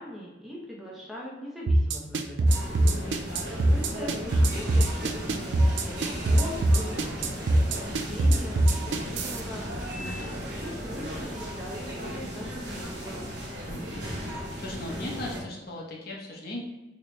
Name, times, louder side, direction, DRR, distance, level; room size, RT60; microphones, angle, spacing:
voice 1, 0.0-2.9 3.7-9.7 10.3-13.3, equal, ahead, -4 dB, 0.6 m, -41 dB
sound 1, 1.7-9.4, right 1 dB, 80° right, 0.4 m, -22 dB
sound 2, 2.5-15.4, equal, 65° right, 1.1 m, -36 dB
voice 2, 2.7-3.4 10.0-10.4 13.7-14.1 14.6-16.6, left 1 dB, 55° left, -2 dB, 0.7 m, -38 dB
sound 3, 4.6-10.6, equal, 45° right, 1.3 m, -42 dB
4.1 x 2.1 x 3.0 m, 1.1 s
head